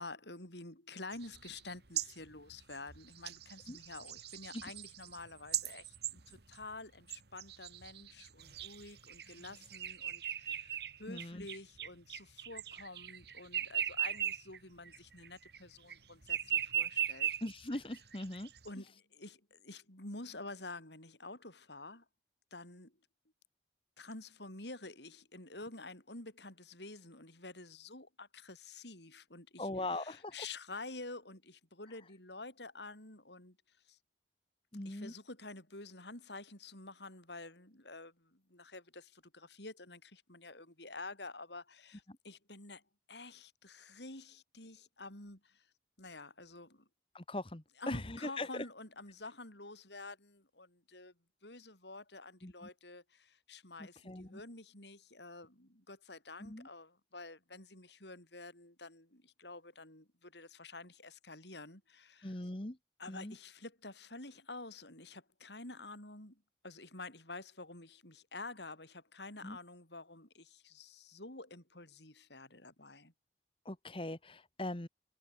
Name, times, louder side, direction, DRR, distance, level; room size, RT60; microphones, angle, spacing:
voice 1, 0.0-17.3 18.6-22.0 22.5-22.9 24.0-33.6 33.9-34.0 34.8-42.8 43.1-45.7 46.0-46.9 47.8-51.1 51.4-62.5 63.0-73.1, left 2 dB, 75° left, 7.9 m, -49 dB
sound 1, 1.1-6.7 7.1-14.6 14.8-15.9 16.2-18.7, right 10 dB, 65° right, 1.7 m, -39 dB
voice 2, 11.1-11.4 17.4-18.5 29.6-30.3 34.7-35.1 47.1-48.6 52.4-52.5 54.0-54.4 56.4-56.7 62.2-62.8 63.1-63.3 69.4-69.6 73.6-74.9, left 1 dB, 30° left, 1.4 m, -40 dB
head